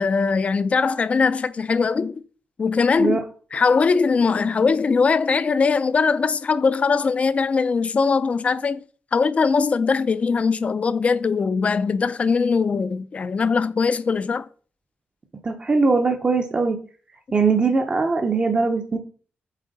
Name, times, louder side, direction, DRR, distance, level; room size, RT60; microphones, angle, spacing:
voice 1, 0.0-2.2 2.6-3.2 3.5-8.8 9.1-14.5, left 5 dB, 35° left, 0.4 m, -21 dB
voice 2, 15.4-16.8 17.3-19.0, right 4 dB, 25° right, 0.6 m, -20 dB
7.4 x 4.3 x 3.9 m
wide cardioid pair, 180°, 4 cm